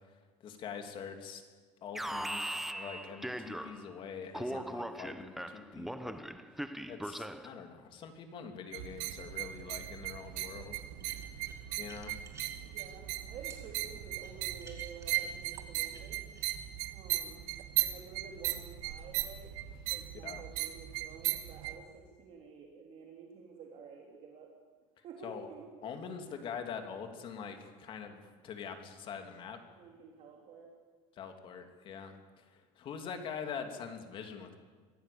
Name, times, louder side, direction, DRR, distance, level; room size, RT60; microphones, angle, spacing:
voice 1, 0.4-1.4 1.8-6.2 6.9-10.8 11.4-12.3 20.2-20.4 25.2-25.5 25.8-29.6 31.2-32.2 32.5-34.6, left 6 dB, 40° left, 6 dB, 2.8 m, -44 dB
Alarm, 1.9-4.0 4.3-7.6, right 1 dB, ahead, 0.8 m, -39 dB
sound 1, 8.7-21.8, right 14 dB, 80° right, 1.6 m, -37 dB
sound 2, 11.0-12.9 13.5-13.6 14.2-16.6, right 4 dB, 20° right, 3.7 m, -55 dB
voice 2, 12.6-16.2 16.9-17.5 17.7-19.5 19.8-24.5 25.0-26.1 29.7-30.7, right 5 dB, 45° right, 0 dB, 3.5 m, -51 dB
25.0 x 17.0 x 8.6 m, 1.5 s
cardioid pair, 160°, 14 cm